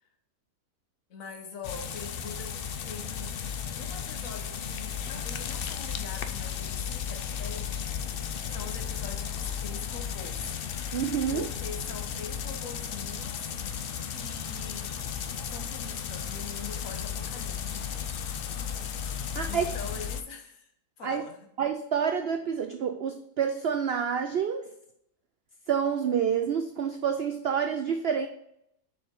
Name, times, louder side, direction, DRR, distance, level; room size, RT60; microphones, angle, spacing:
voice 1, 1.1-3.4 3.7-8.0 8.5-10.6 11.3-13.5 14.0-15.1 15.4-18.1 19.5-20.7 21.0-21.5, left 5 dB, 60° left, 5 dB, 1.4 m, -43 dB
sound 1, 1.6-20.2, left 8 dB, 90° left, 0.5 m, -34 dB
voice 2, 10.9-11.4 19.3-19.7 21.0-21.2 21.6-24.7 25.7-28.3, right 7 dB, 75° right, 7 dB, 0.5 m, -28 dB
6.8 x 5.2 x 3.7 m, 0.76 s
omnidirectional pair, 1.7 m